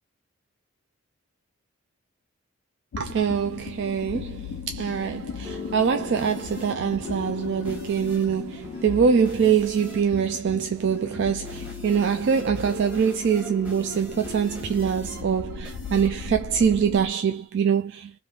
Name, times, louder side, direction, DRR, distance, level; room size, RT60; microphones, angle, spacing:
sound 1, 2.9-17.1, left 6 dB, 70° left, 0.3 m, -38 dB
voice 1, 3.0-18.1, right 7 dB, 55° right, 0.3 m, -24 dB
sound 2, 5.0-17.5, left 4 dB, 5° right, 1.0 m, -41 dB
3.4 x 2.5 x 2.3 m
head